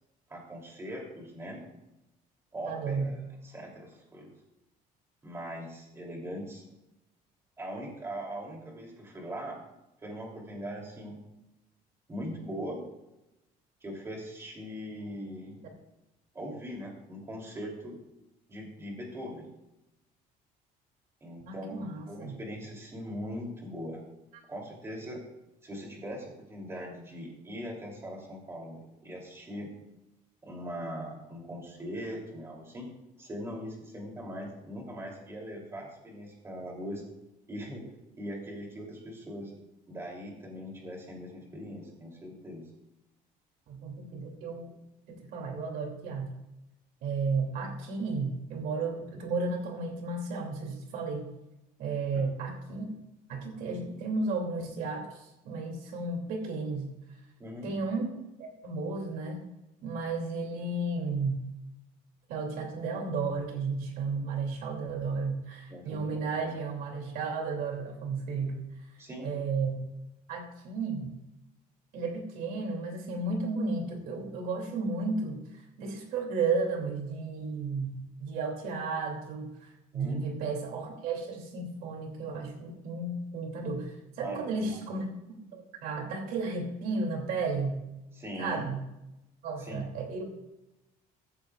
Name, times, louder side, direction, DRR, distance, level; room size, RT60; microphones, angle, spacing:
voice 1, 0.3-1.6 2.5-4.3 5.2-6.6 7.6-9.6 10.0-11.2 12.1-12.8 13.8-15.6 16.3-18.0 18.5-19.5 21.2-24.0 24.5-25.2 25.6-29.7 30.4-32.9 33.2-37.0 37.5-37.8 38.2-39.5 39.9-42.6 52.1-52.3 57.4-57.7 65.7-66.3 69.0-69.3 79.9-80.2 84.2-84.9 88.1-88.7 89.6-89.8, equal, 15° right, 0 dB, 3.1 m, -40 dB
voice 2, 2.6-3.1 21.4-22.4 43.7-44.7 45.1-46.4 47.0-51.3 51.8-52.9 53.3-56.9 57.6-59.4 59.8-61.4 62.3-68.7 69.2-69.8 70.3-71.1 71.9-85.1 85.5-87.8 88.4-88.8 89.4-90.3, right 4 dB, 70° right, 2 dB, 2.8 m, -33 dB
15.0 x 14.5 x 2.4 m, 0.93 s
cardioid pair, 175°, 16 cm